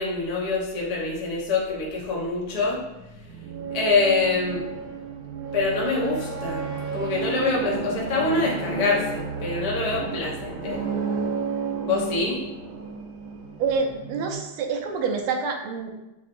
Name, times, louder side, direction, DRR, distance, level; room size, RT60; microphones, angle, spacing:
voice 1, 0.0-2.8 3.7-4.7 5.5-6.6 6.9-10.8 11.8-12.4, left 3 dB, 65° left, -4 dB, 0.3 m, -25 dB
sound 1, 2.7-14.3, right 5 dB, 70° right, 1.1 m, -32 dB
voice 2, 13.6-15.9, right 5 dB, 85° right, 4 dB, 1.5 m, -27 dB
7.1 x 2.8 x 2.5 m, 0.96 s
omnidirectional pair, 2.3 m